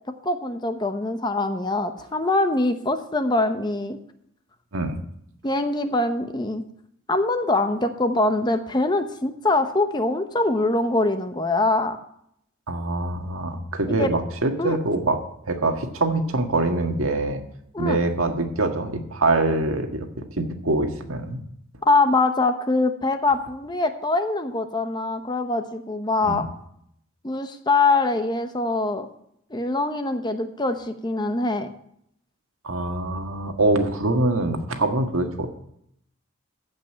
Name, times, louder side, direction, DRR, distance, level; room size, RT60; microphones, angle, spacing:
voice 1, 0.2-4.0 5.4-6.6 7.1-12.0 14.0-14.1 14.6-14.8 17.7-18.0 21.9-26.4 27.2-29.1 29.5-31.7, left 2 dB, 20° left, 8 dB, 0.8 m, -23 dB
voice 2, 12.7-15.2 15.5-17.4 17.8-20.1 20.4-21.4 26.2-26.4 32.6-35.5, right 2 dB, 75° right, 5 dB, 1.6 m, -24 dB
15.0 x 5.4 x 8.7 m, 0.72 s
head